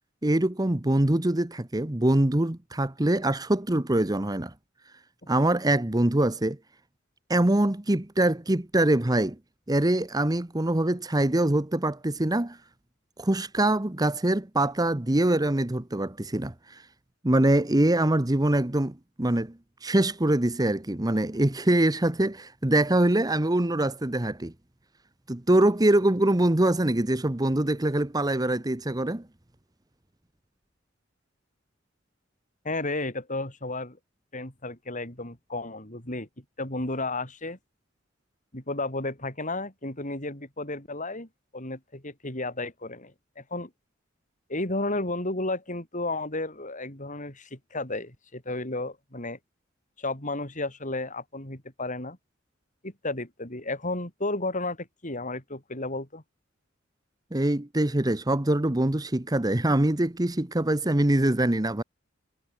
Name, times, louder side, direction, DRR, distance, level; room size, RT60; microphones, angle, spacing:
voice 1, 0.2-4.5 5.3-6.6 7.3-9.4 9.7-12.6 13.2-16.8 17.2-24.5 25.3-29.3 57.3-61.8, right 1 dB, 20° right, 1.0 m, -24 dB
voice 2, 32.6-34.0 34.3-36.3 36.6-37.6 38.5-43.7 44.5-49.4 50.0-52.2 52.8-56.2, left 2 dB, 40° left, 7.2 m, -33 dB
head